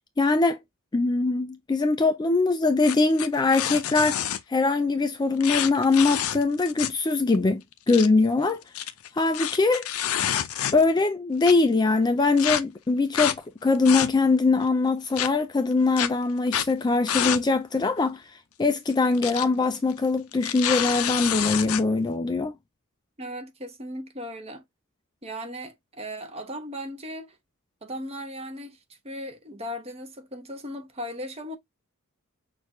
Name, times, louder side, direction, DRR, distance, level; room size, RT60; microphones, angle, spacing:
voice 1, 0.2-0.6 0.9-4.2 4.5-7.6 7.9-8.6 9.2-9.9 10.7-18.2 18.6-22.6, left 3 dB, 20° left, 0.3 m, -22 dB
sound 1, 2.8-4.4 5.4-7.0 7.3-7.4 7.7-8.1 8.6-11.0 11.4-11.5 12.4-12.6 13.1-13.4 13.7-14.4 15.2-15.3 16.0-16.1 16.5-16.7 17.1-17.4 17.7-17.8 18.9-19.4 19.7-19.9 20.3-21.8, left 10 dB, 80° left, 0.5 m, -28 dB
voice 2, 23.2-24.6 25.2-27.4 27.8-28.8 29.0-31.6, equal, 30° right, 0.9 m, -37 dB
6.2 x 2.5 x 3.0 m
head